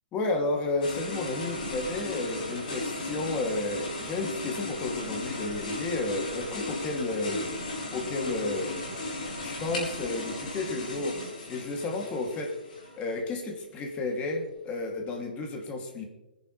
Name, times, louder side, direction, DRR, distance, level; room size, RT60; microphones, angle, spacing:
voice 1, 0.1-7.5 7.9-8.8 9.4-11.2 11.5-12.6 12.9-16.0, left 2 dB, 25° left, 2 dB, 2.9 m, -32 dB
sound 1, 0.8-13.1, left 2 dB, 60° left, 4.7 m, -36 dB
25.5 x 11.0 x 3.4 m, 1.1 s
figure-of-eight pair, 115°, 5 cm